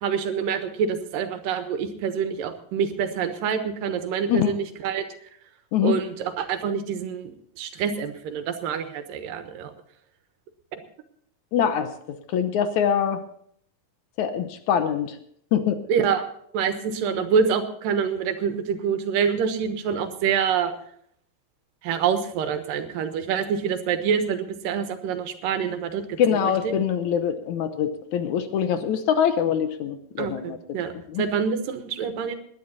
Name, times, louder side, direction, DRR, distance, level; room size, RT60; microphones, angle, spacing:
voice 1, 0.0-5.1 5.8-9.7 15.9-16.2 16.5-20.7 21.8-26.7 28.7-28.8 30.2-30.9 31.2-32.4, right 7 dB, 85° right, 8 dB, 2.9 m, -26 dB
voice 2, 11.5-11.9 12.3-13.2 14.2-15.2 15.5-15.8 26.2-30.8 31.1-31.2, left 8 dB, 70° left, 9 dB, 2.1 m, -24 dB
20.0 x 10.5 x 4.1 m, 0.66 s
omnidirectional pair, 3.8 m